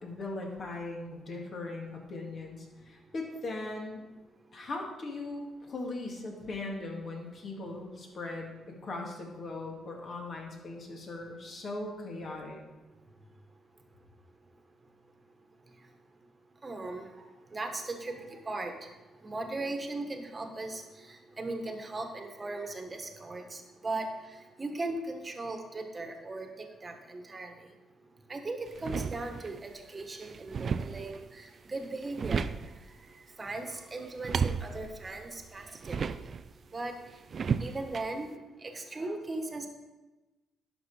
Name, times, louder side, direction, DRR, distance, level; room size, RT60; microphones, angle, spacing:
voice 1, 0.0-4.0 4.5-12.6, left 2 dB, 50° left, 0 dB, 2.2 m, -39 dB
voice 2, 16.6-17.2 17.5-18.7 19.2-20.8 21.1-24.1 24.6-26.5 26.8-27.5 28.3-32.4 33.4-36.2 36.7-36.9 37.6-39.7, right 2 dB, 30° right, 5 dB, 1.4 m, -38 dB
sound 1, 28.7-29.6 30.0-31.3 31.8-32.9 34.0-36.5 37.3-38.1, right 6 dB, 45° right, 0.4 m, -34 dB
11.0 x 6.0 x 4.9 m, 1.1 s
cardioid pair, 90°, 0 cm